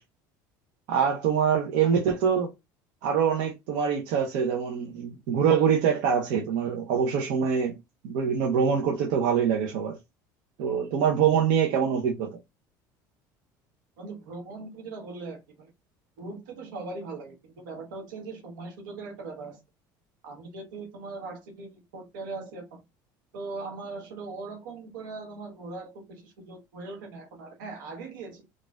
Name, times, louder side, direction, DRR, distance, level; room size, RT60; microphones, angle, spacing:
voice 1, 0.9-2.5 3.0-7.8 8.0-10.0 10.6-12.4, right 7 dB, 70° right, 0.7 m, -24 dB
voice 2, 14.0-15.7 16.2-19.6 20.2-22.8 23.3-28.5, right 3 dB, 85° right, 1.0 m, -40 dB
4.0 x 2.4 x 2.2 m
hypercardioid pair, 80°, 10 cm